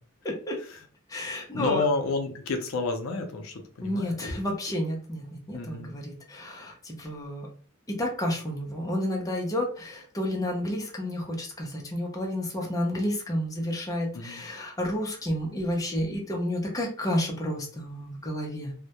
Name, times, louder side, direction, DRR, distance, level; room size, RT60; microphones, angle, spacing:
voice 1, 0.2-0.6 1.1-1.8 3.8-7.5 7.9-18.7, left 1 dB, 15° left, -1 dB, 0.5 m, -31 dB
voice 2, 1.5-4.4 5.5-6.0 14.1-14.4, left 3 dB, 70° left, 5 dB, 0.4 m, -30 dB
2.2 x 2.0 x 2.8 m, 0.42 s
head